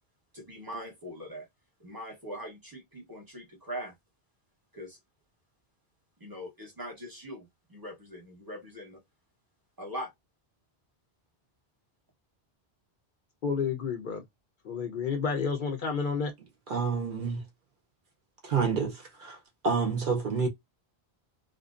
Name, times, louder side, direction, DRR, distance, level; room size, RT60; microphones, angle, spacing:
voice 1, 0.3-1.5 1.8-3.9 4.7-5.0 6.2-9.0 9.8-10.1, equal, 20° right, 0.8 m, -41 dB
voice 2, 13.4-14.2 14.6-16.3, left 5 dB, 60° left, 0.6 m, -30 dB
voice 3, 16.7-17.4 18.4-19.4 19.6-20.5, right 5 dB, 60° right, 0.7 m, -28 dB
2.5 x 2.1 x 2.3 m
omnidirectional pair, 1.1 m